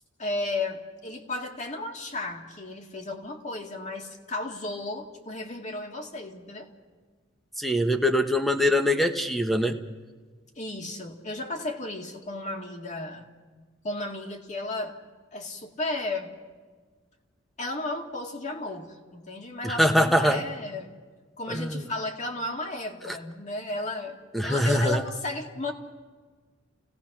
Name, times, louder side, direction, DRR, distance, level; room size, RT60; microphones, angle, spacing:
voice 1, 0.2-6.7 10.6-13.3 13.8-15.0 15.3-16.3 17.6-21.0 21.4-25.7, left 2 dB, 35° left, 2 dB, 2.0 m, -34 dB
voice 2, 7.6-9.8 19.6-20.4 21.5-21.8 24.3-25.0, equal, ahead, 6 dB, 1.1 m, -23 dB
29.5 x 18.0 x 5.9 m, 1.4 s
head